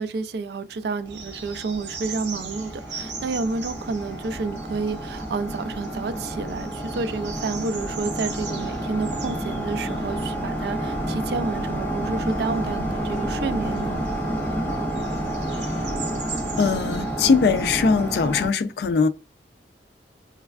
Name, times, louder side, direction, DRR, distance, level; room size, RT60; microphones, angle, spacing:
voice 1, 0.0-14.0, right 4 dB, 65° right, 0.3 m, -30 dB
sound 1, 1.0-18.5, right 1 dB, 10° left, 0.6 m, -30 dB
sound 2, 1.1-18.3, right 5 dB, 85° right, 0.7 m, -41 dB
voice 2, 16.6-19.1, left 5 dB, 65° left, 0.3 m, -21 dB
3.2 x 2.3 x 2.3 m
head